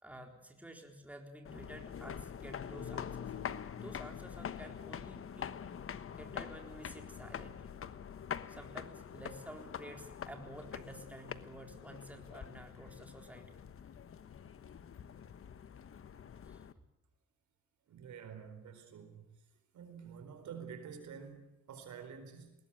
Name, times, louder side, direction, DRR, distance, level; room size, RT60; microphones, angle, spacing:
voice 1, 0.0-3.3 3.7-5.5 6.1-7.6 8.5-13.6 16.5-16.6, right 1 dB, 5° right, 2 dB, 4.0 m, -51 dB
sound 1, 1.4-16.7, left 8 dB, 45° left, 1.2 m, -45 dB
voice 2, 17.9-19.4 19.7-22.5, right 7 dB, 70° right, 8 dB, 4.4 m, -49 dB
20.0 x 20.0 x 8.9 m, 0.91 s
cardioid pair, 90°, 30 cm